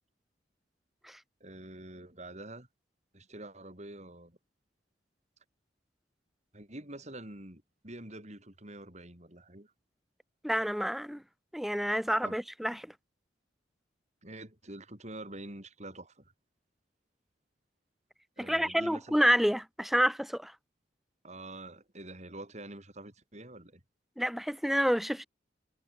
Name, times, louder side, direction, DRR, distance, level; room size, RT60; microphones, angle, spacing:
voice 1, 1.4-2.7 3.1-4.4 6.5-9.7 12.2-12.4 14.2-16.3 18.4-19.2 21.2-23.8, right 1 dB, 40° right, 5.5 m, -46 dB
voice 2, 10.4-11.2 11.5-12.9 18.4-20.5 24.2-25.3, equal, ahead, 1.0 m, -28 dB
head